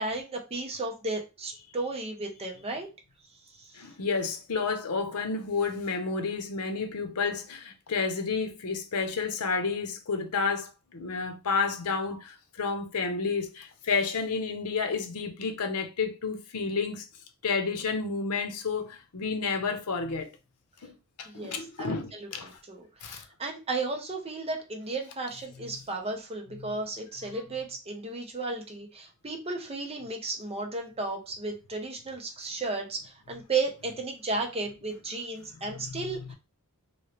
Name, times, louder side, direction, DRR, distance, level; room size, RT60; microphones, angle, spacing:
voice 1, 0.0-2.9 21.3-36.3, right 3 dB, 25° right, 0.8 m, -34 dB
voice 2, 3.7-17.1 17.4-20.3 20.8-22.6 23.0-23.2 25.6-25.8 26.6-26.7 27.3-27.4 35.5-36.3, left 4 dB, 90° left, 0.7 m, -31 dB
3.0 x 2.7 x 3.0 m
head